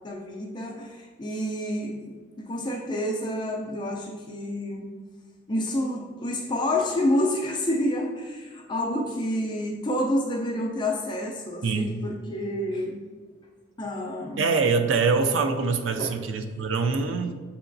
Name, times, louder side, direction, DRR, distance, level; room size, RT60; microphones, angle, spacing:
voice 1, 0.0-5.0 5.5-13.0 13.8-14.5 16.0-16.2, left 1 dB, 25° left, -1 dB, 0.4 m, -29 dB
voice 2, 11.6-12.0 14.4-17.3, right 4 dB, 80° right, 7 dB, 0.4 m, -24 dB
6.9 x 3.0 x 2.6 m, 1.5 s
head